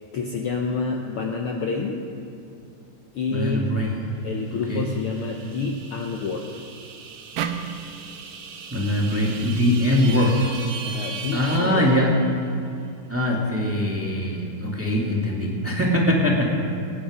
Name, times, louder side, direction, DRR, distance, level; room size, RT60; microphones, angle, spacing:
voice 1, 0.1-2.0 3.1-3.8 4.2-6.5 10.8-11.9, left 4 dB, 80° left, 1 dB, 1.2 m, -28 dB
voice 2, 3.3-4.0 4.5-4.8 8.7-10.3 11.3-12.2 13.1-16.6, left 1 dB, 5° right, -2 dB, 1.5 m, -22 dB
sound 1, 4.5-12.5, right 5 dB, 65° right, 1.3 m, -39 dB
sound 2, 7.4-10.6, right 8 dB, 85° right, 2.4 m, -35 dB
25.0 x 10.0 x 5.1 m, 2.4 s
omnidirectional pair, 3.8 m